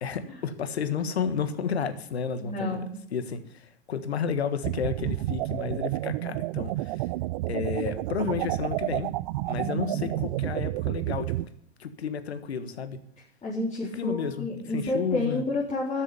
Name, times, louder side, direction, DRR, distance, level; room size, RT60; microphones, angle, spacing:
voice 1, 0.0-7.1 7.5-9.1 9.4-11.5 11.8-13.0 13.9-14.5 14.7-15.4, left 6 dB, 75° left, 11 dB, 1.6 m, -32 dB
voice 2, 2.4-2.9 9.6-10.1 13.4-16.0, left 2 dB, 20° left, -6 dB, 4.0 m, -30 dB
sound 1, 4.6-11.4, right 18 dB, 45° right, 0.4 m, -30 dB
13.0 x 7.5 x 9.9 m, 0.66 s
hypercardioid pair, 105°, 32 cm